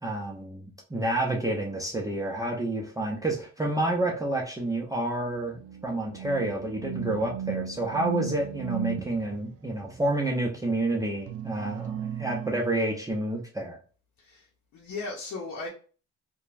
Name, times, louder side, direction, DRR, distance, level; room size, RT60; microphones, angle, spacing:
voice 1, 0.0-13.8, right 1 dB, 10° right, 0.6 m, -29 dB
sound 1, 5.6-9.1 11.3-12.6, right 8 dB, 55° right, 0.4 m, -35 dB
voice 2, 14.2-15.7, left 3 dB, 70° left, 0.8 m, -37 dB
2.9 x 2.2 x 2.5 m
cardioid pair, 90°, 30 cm